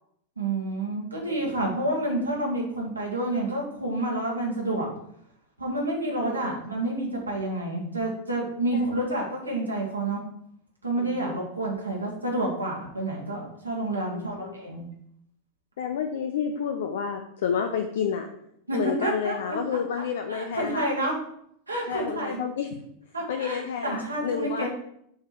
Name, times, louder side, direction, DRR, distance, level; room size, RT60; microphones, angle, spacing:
voice 1, 0.4-4.9 5.6-10.2 10.8-14.9 18.7-20.0 20.3-21.2 21.7-22.4 23.1-24.7, right 1 dB, 80° right, -2 dB, 1.6 m, -29 dB
voice 2, 6.2-6.6 8.7-8.9 11.0-11.4 14.1-14.5 15.8-18.3 18.7-20.9 21.9-22.7 23.3-24.7, left 7 dB, 60° left, 5 dB, 0.5 m, -30 dB
6.5 x 3.6 x 4.4 m, 0.72 s
figure-of-eight pair, 90°, 0 cm